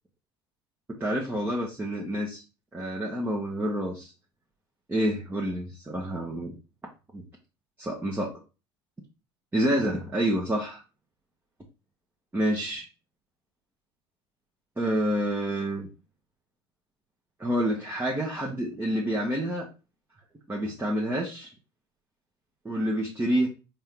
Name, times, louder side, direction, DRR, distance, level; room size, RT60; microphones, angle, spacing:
voice 1, 1.0-2.4 2.7-4.1 4.9-6.5 7.1-7.2 7.8-8.3 9.5-10.8 12.3-12.8 14.8-15.9 17.4-19.7 20.5-21.5 22.6-23.5, right 1 dB, 15° right, -2 dB, 1.0 m, -28 dB
4.3 x 2.7 x 3.6 m, 0.32 s
hypercardioid pair, 70°, 14 cm